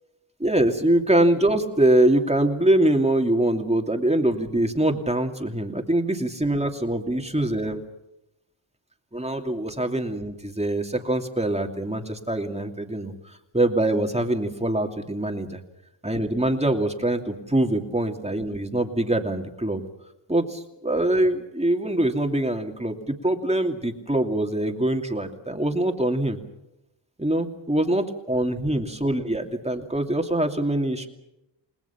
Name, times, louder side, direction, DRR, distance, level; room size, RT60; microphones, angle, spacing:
voice 1, 0.4-7.8 9.1-13.1 13.5-15.6 16.0-19.8 20.3-26.4 27.2-31.1, right 1 dB, 15° right, 4 dB, 2.7 m, -24 dB
29.5 x 20.0 x 5.9 m, 0.88 s
wide cardioid pair, 80°, 49 cm